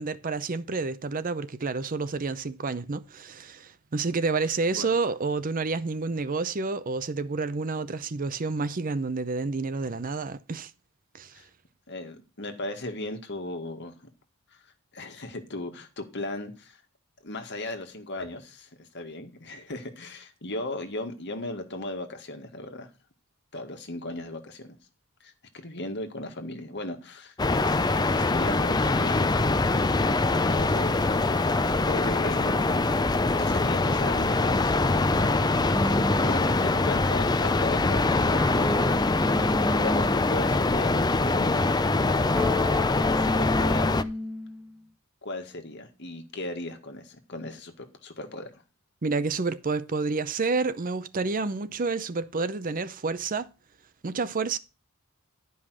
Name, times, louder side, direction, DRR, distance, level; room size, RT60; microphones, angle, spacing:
voice 1, 0.0-10.7 11.1-11.3 49.0-53.5 54.0-54.6, right 4 dB, 40° right, 0.6 m, -29 dB
voice 2, 11.9-14.0 14.5-14.6 14.9-16.8 17.2-22.9 23.5-24.8 25.2-27.4 27.9-31.1 31.8-32.9 33.4-39.1 39.7-41.6 43.0-44.0 45.2-48.6, left 1 dB, 55° left, 1.9 m, -37 dB
sound 1, 27.4-44.0, left 3 dB, 20° left, 0.5 m, -23 dB
sound 2, 35.7-36.8 38.4-40.8 42.4-44.8, left 1 dB, 5° right, 0.9 m, -32 dB
11.5 x 5.5 x 6.3 m
head